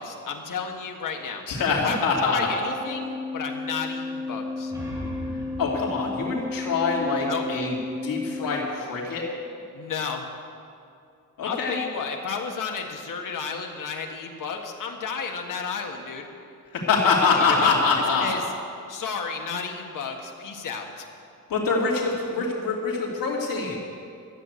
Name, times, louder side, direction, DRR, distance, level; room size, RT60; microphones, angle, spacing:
voice 1, 0.0-1.4 1.8-4.7 7.3-7.4 9.7-10.3 11.4-16.3 17.3-17.8 18.2-18.4 18.9-21.1, left 5 dB, 70° left, 2 dB, 1.7 m, -32 dB
voice 2, 1.5-2.5 5.6-7.8 8.0-9.2 11.4-11.8 16.7-18.3 21.5-23.8, left 4 dB, 90° left, -2 dB, 2.7 m, -24 dB
Organ, 2.6-9.2, left 3 dB, 10° left, 1.3 m, -33 dB
sound 1, 4.4-7.9, right 1 dB, 10° right, 2.9 m, -40 dB
13.0 x 8.2 x 9.4 m, 2.4 s
wide cardioid pair, 130°, 33 cm